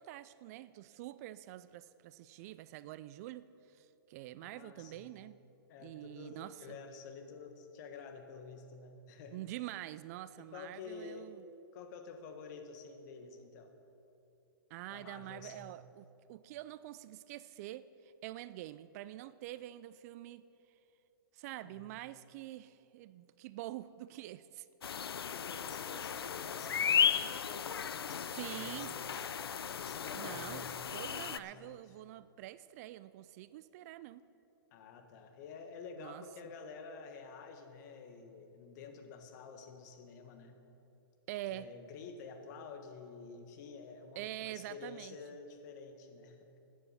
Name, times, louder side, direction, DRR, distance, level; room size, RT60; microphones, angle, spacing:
voice 1, 0.0-5.4 5.8-6.8 9.3-11.4 14.7-20.5 21.3-24.7 28.4-29.0 30.1-34.2 36.0-36.2 41.3-41.7 44.2-45.2, right 15 dB, 40° right, 16 dB, 0.4 m, -46 dB
voice 2, 4.4-5.1 5.7-9.4 10.4-11.3 11.7-13.7 14.9-15.8 21.6-21.9 25.3-30.8 31.2-31.8 34.7-40.6 41.5-46.6, left 5 dB, 50° left, 6 dB, 1.6 m, -50 dB
sound 1, 24.8-31.4, left 7 dB, 90° left, 0.4 m, -35 dB
14.0 x 9.6 x 5.7 m, 2.8 s
hypercardioid pair, 130°, 12 cm